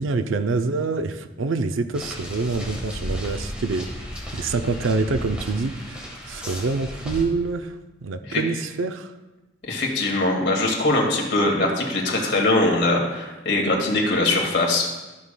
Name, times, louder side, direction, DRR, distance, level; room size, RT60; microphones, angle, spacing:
voice 1, 0.0-4.0 4.3-9.1, right 3 dB, 85° right, 9 dB, 0.5 m, -26 dB
sound 1, 1.9-7.2, equal, 5° right, 1.4 m, -34 dB
voice 2, 9.6-14.9, left 2 dB, 60° left, 0 dB, 2.0 m, -22 dB
14.0 x 6.5 x 2.2 m, 1.1 s
head